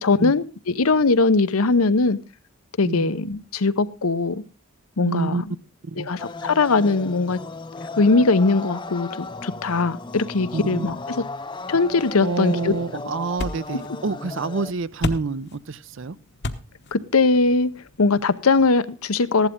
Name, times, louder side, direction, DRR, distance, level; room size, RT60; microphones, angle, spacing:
voice 1, 0.0-2.2 2.8-4.4 5.0-5.5 6.0-7.4 8.0-11.2 11.7-13.0 13.9-14.0 16.9-17.7 18.0-19.5, left 3 dB, 85° left, 0.8 m, -20 dB
voice 2, 5.1-5.4 5.8-6.1 10.5-11.0 12.2-16.2, right 3 dB, 60° right, 0.6 m, -27 dB
sound 1, 6.2-14.7, left 3 dB, 20° left, 0.5 m, -36 dB
sound 2, 11.7-18.8, left 2 dB, 50° left, 1.0 m, -36 dB
15.5 x 11.5 x 3.7 m
head